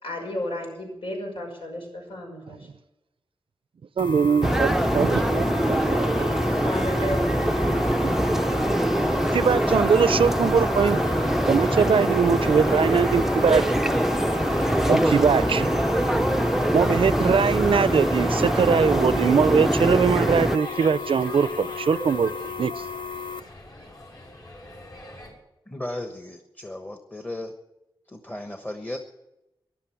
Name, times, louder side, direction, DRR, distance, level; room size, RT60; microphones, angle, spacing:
voice 1, 0.0-2.7 6.6-8.1 8.5-8.7, equal, 85° left, 5.9 m, -33 dB
sound 1, 4.0-23.4, left 5 dB, 65° left, 0.9 m, -34 dB
voice 2, 4.0-6.5 8.0-8.1 9.3-11.0 11.5-13.6 14.9-15.7 16.7-22.3 22.6-22.8, right 6 dB, 75° right, 0.5 m, -22 dB
sound 2, 4.4-20.6, right 1 dB, 5° right, 0.5 m, -23 dB
sound 3, 5.7-25.3, left 1 dB, 45° left, 5.5 m, -42 dB
voice 3, 25.7-27.5 28.2-29.0, left 1 dB, 20° left, 1.1 m, -35 dB
14.5 x 11.5 x 7.4 m
wide cardioid pair, 110°, 9 cm